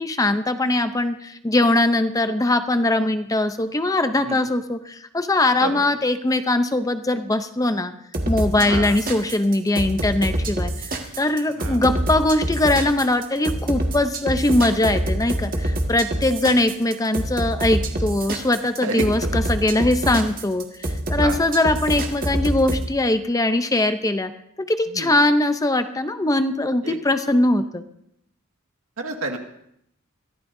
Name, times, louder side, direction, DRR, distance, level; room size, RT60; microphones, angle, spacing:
voice 1, 0.0-7.9 8.3-20.7 21.1-24.3 24.6-27.8, left 2 dB, 15° left, 9 dB, 0.6 m, -21 dB
sound 1, 8.1-22.8, right 1 dB, 40° right, 1.8 m, -25 dB
voice 2, 8.6-9.0 11.6-11.8 18.8-19.0 21.2-21.4 24.9-25.1 26.8-27.0 29.0-29.4, right 3 dB, 75° right, 3 dB, 1.9 m, -29 dB
23.0 x 15.0 x 2.7 m, 0.75 s
head